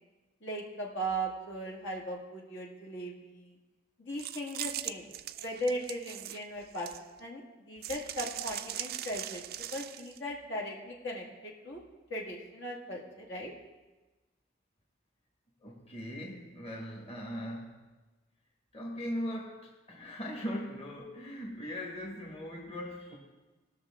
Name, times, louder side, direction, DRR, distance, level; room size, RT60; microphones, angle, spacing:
voice 1, 0.4-3.6 4.0-5.1 5.4-6.9 7.2-9.4 9.7-11.8 12.1-13.5, right 1 dB, 65° left, -2 dB, 1.9 m, -38 dB
sound 1, 4.2-7.2 7.8-10.2, right 13 dB, 50° right, 0.4 m, -40 dB
voice 2, 15.6-17.8 18.7-23.2, equal, 30° left, -2 dB, 1.7 m, -39 dB
19.5 x 6.5 x 3.7 m, 1.2 s
head